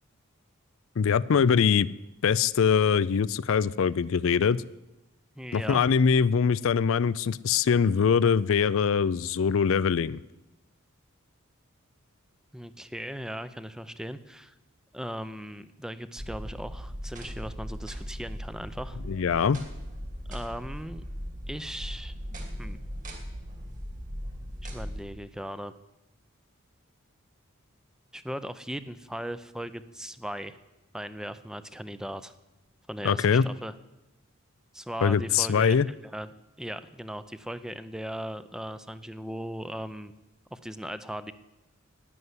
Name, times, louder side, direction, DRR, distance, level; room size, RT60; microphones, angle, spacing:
voice 1, 1.0-1.9 2.2-4.6 5.5-10.2 19.1-19.6 33.0-33.5 35.0-35.9, left 6 dB, 65° left, 18 dB, 0.4 m, -23 dB
voice 2, 5.4-5.8 12.5-14.5 14.9-19.0 20.3-21.0 21.5-22.1 22.6-22.8 24.6-25.7 28.1-30.6 30.9-32.3 32.9-33.7 34.7-36.3 36.6-40.1 40.5-41.3, equal, 5° right, 12 dB, 0.6 m, -38 dB
sound 1, 16.2-25.0, equal, 40° right, 2.6 m, -38 dB
12.5 x 9.5 x 9.6 m, 0.99 s
head